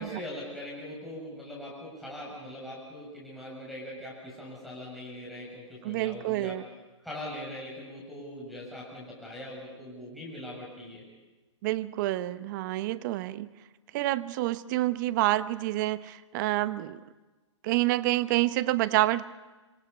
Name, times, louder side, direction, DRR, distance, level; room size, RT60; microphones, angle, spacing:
voice 1, 0.0-6.6 7.0-11.0, left 1 dB, ahead, -4 dB, 7.0 m, -41 dB
voice 2, 5.8-6.6 11.6-13.5 13.9-17.0 17.6-19.2, right 16 dB, 40° right, 15 dB, 0.9 m, -28 dB
27.5 x 26.0 x 5.5 m, 1.2 s
hypercardioid pair, 130°, 16 cm